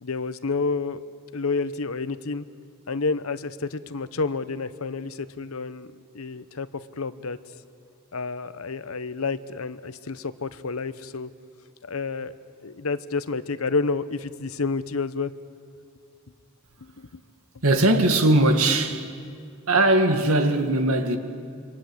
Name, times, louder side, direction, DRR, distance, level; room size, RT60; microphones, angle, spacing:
voice 1, 0.0-1.0 1.3-2.4 2.9-5.9 6.1-6.7 7.0-7.4 8.1-11.3 11.8-12.3 12.6-15.3 16.8-17.2, left 4 dB, 85° left, 1.0 m, -29 dB
voice 2, 17.6-19.1 19.7-21.2, right 1 dB, 90° right, 2.1 m, -20 dB
27.5 x 24.0 x 8.0 m
head